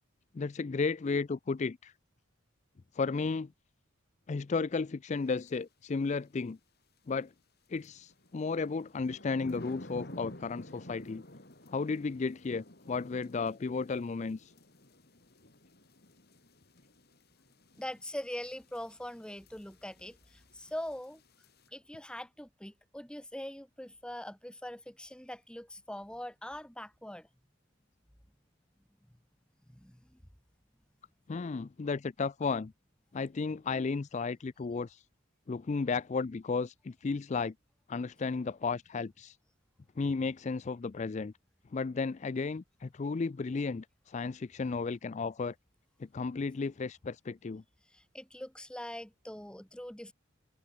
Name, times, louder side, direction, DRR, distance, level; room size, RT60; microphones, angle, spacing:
voice 1, 0.3-1.9 2.9-3.5 4.3-6.6 7.1-7.3 7.7-11.2 11.7-14.5 31.3-32.7 33.1-35.0 35.5-37.5 37.9-39.4 40.0-41.3 41.7-45.6 46.0-47.6, left 4 dB, 35° left, 0.4 m, -34 dB
sound 1, 5.4-5.6 7.8-21.7, left 1 dB, 50° left, 3.9 m, -52 dB
voice 2, 17.8-21.2 21.7-27.3 29.7-30.2 47.9-50.1, left 1 dB, 5° left, 1.0 m, -42 dB
head